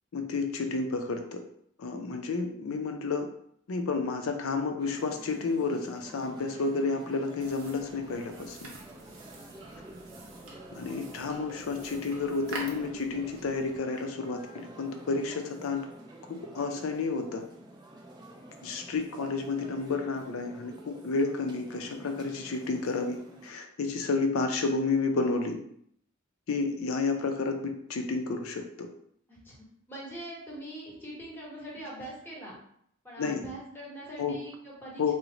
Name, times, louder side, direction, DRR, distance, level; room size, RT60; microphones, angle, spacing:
voice 1, 0.1-1.4 1.8-3.3 3.7-8.7 10.7-15.8 16.3-17.4 18.6-25.6 26.5-28.9 33.2-33.4 34.2-34.4 35.0-35.1, left 4 dB, 90° left, 5 dB, 0.5 m, -31 dB
sound 1, 4.8-23.5, right 1 dB, 20° right, 0.4 m, -49 dB
sound 2, 7.4-13.8, right 2 dB, 65° right, 0.7 m, -46 dB
voice 2, 29.9-32.6 33.0-35.1, right 1 dB, 10° left, -5 dB, 0.9 m, -42 dB
3.0 x 2.0 x 3.7 m, 0.68 s
head